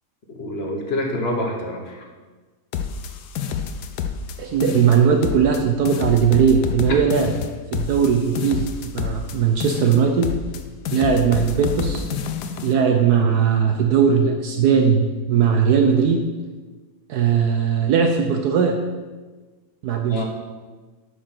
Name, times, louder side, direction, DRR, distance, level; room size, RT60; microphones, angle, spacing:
voice 1, 0.3-2.0 6.9-7.0 20.1-20.2, left 1 dB, 40° left, 1 dB, 1.4 m, -27 dB
sound 1, 2.7-4.4 4.6-5.6 5.9-9.4 9.6-10.6 10.9-12.7, left 7 dB, 75° left, 1.2 m, -28 dB
voice 2, 4.4-7.3 7.7-8.7 8.9-10.3 10.9-12.1 12.6-16.2 17.1-18.8 19.8-20.2, right 7 dB, 70° right, 4 dB, 1.2 m, -18 dB
8.1 x 5.9 x 6.0 m, 1.3 s
omnidirectional pair, 1.8 m